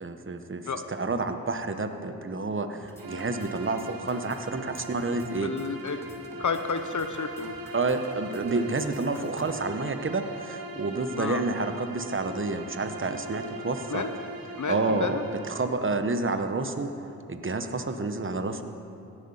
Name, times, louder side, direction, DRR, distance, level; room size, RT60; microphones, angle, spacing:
voice 1, 0.0-5.5 7.7-14.0 14.7-15.2 15.5-18.6, right 3 dB, 35° right, 8 dB, 1.1 m, -29 dB
sound 1, 2.7-9.5, equal, 5° left, 2.4 m, -50 dB
Bowed string instrument, 3.0-15.8, right 2 dB, 75° right, 1.4 m, -41 dB
voice 2, 5.4-6.0 6.4-7.6 11.2-11.4 13.9-14.1 14.6-15.2, left 5 dB, 55° left, 8 dB, 0.9 m, -31 dB
16.5 x 11.0 x 5.6 m, 2.6 s
cardioid pair, 50°, 35 cm